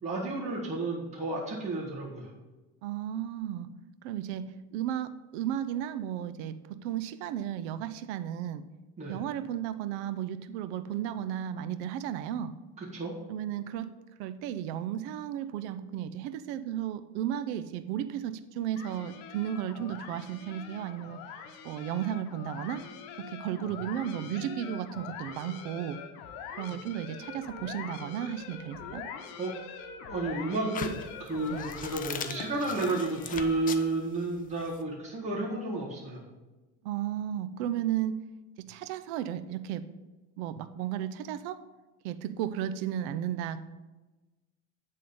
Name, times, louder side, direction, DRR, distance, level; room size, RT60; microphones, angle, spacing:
voice 1, 0.0-2.3 9.0-9.1 12.8-13.1 29.4-29.5 30.0-36.2, right 2 dB, 20° right, -5 dB, 1.7 m, -32 dB
voice 2, 2.8-3.7 4.0-6.6 6.8-8.6 9.1-12.5 13.3-13.9 14.2-21.2 21.6-22.9 23.3-26.0 26.6-29.0 31.5-31.7 36.8-38.2 38.7-39.8 40.4-41.6 42.0-43.6, right 10 dB, 85° right, 13 dB, 0.6 m, -34 dB
sound 1, 18.8-33.9, left 7 dB, 80° left, 1.0 m, -44 dB
sound 2, 30.7-34.8, left 7 dB, 25° left, 0.4 m, -40 dB
9.4 x 3.7 x 5.2 m, 1.2 s
cardioid pair, 130°, 33 cm